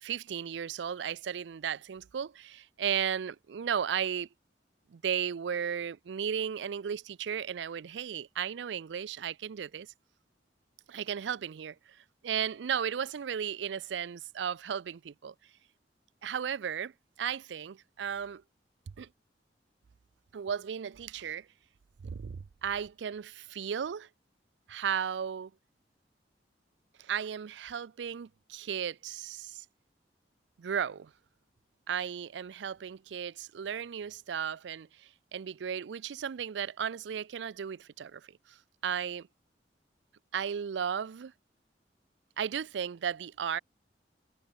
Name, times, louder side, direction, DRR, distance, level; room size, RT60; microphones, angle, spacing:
voice 1, 0.0-4.3 4.9-9.9 10.9-12.0 12.2-15.3 16.2-16.9 17.2-18.4 19.0-19.1 20.3-21.5 22.0-24.1 24.7-25.5 27.0-29.7 30.6-31.1 31.9-38.6 38.8-39.3 40.3-41.3 42.4-43.6, right 8 dB, 85° right, 0.4 m, -35 dB
head